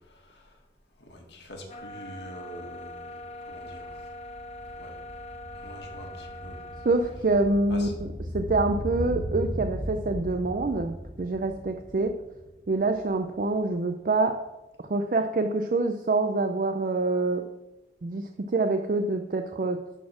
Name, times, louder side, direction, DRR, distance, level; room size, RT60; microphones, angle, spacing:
voice 1, 0.1-0.6 1.0-4.0 4.7-4.9 5.6-6.7 7.7-7.9, equal, 75° left, 1 dB, 1.7 m, -45 dB
sound 1, 1.7-7.2, left 1 dB, 35° left, 0.6 m, -42 dB
sound 2, 2.5-2.6 2.9-13.2 13.5-13.6, equal, 20° right, 1.9 m, -37 dB
voice 2, 6.8-12.2 12.7-14.4 14.8-17.4 18.0-19.8, right 2 dB, 50° right, 7 dB, 0.5 m, -26 dB
11.0 x 4.2 x 6.0 m, 1.0 s
head